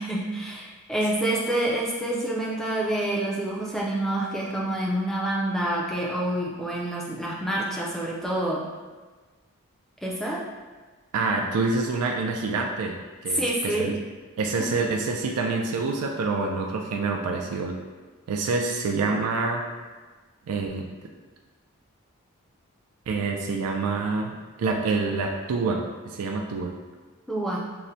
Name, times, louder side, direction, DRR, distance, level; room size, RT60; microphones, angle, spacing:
voice 1, 0.0-8.7 10.0-10.4 13.3-14.0 14.6-14.7 27.3-27.6, right 1 dB, ahead, -4 dB, 0.4 m, -27 dB
voice 2, 11.1-13.0 13.2-13.9 14.4-17.8 18.3-19.6 20.5-20.9 23.1-24.3 24.6-26.7, right 3 dB, 85° right, 1 dB, 0.3 m, -27 dB
5.5 x 2.0 x 2.6 m, 1.3 s
head